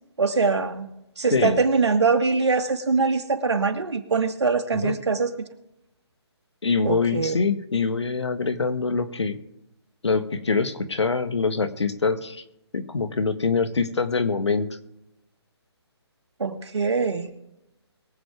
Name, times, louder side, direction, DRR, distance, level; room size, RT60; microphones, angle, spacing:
voice 1, 0.2-0.9 1.2-5.3 6.9-7.3 16.4-17.3, right 4 dB, 80° right, 6 dB, 1.8 m, -23 dB
voice 2, 6.6-9.4 10.0-12.4 12.7-14.7, left 4 dB, 90° left, 10 dB, 1.5 m, -24 dB
22.5 x 8.0 x 3.5 m, 0.86 s
hypercardioid pair, 155°, 14 cm